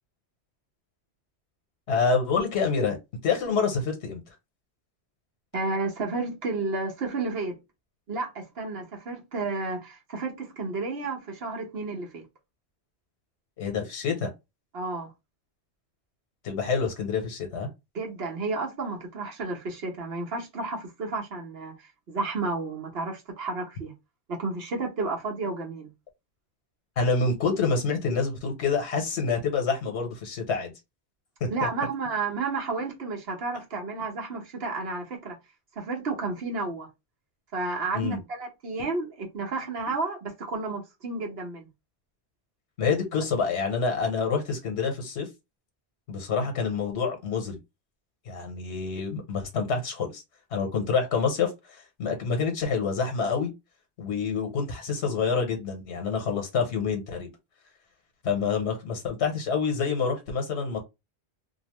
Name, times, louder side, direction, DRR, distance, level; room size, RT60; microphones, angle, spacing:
voice 1, 1.9-3.0 3.2-4.2 13.6-14.3 16.4-17.7 27.0-30.7 31.4-31.5 37.9-38.2 42.8-45.3 46.1-47.6 48.3-50.2 50.5-53.5 54.0-57.3 58.2-60.8, left 5 dB, 80° left, 1.2 m, -27 dB
voice 2, 5.5-7.6 8.1-12.3 14.7-15.1 17.9-21.7 22.1-23.9 24.3-25.9 31.5-35.4 35.7-36.9 37.5-41.7, right 3 dB, 65° right, 1.1 m, -31 dB
2.8 x 2.1 x 2.9 m
omnidirectional pair, 1.1 m